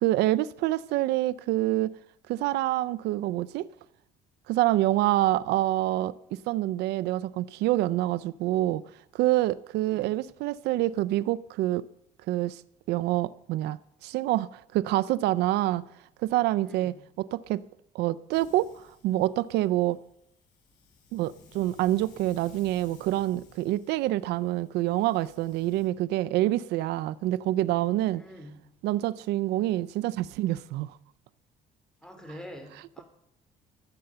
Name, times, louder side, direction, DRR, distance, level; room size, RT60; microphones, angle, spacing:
voice 1, 0.0-1.9 2.3-3.7 4.5-6.1 6.5-8.8 9.1-11.8 12.3-12.6 12.9-13.8 14.0-15.8 16.2-17.6 17.9-20.0 21.1-28.2 28.8-31.0 32.7-33.0, right 15 dB, 85° right, 0.4 m, -26 dB
voice 2, 16.6-17.0 28.2-28.5 32.0-33.0, equal, 5° left, 3.2 m, -45 dB
Hiss, 18.3-25.9, left 4 dB, 70° left, 5.9 m, -57 dB
14.5 x 7.8 x 6.8 m
cardioid pair, 110°, 17 cm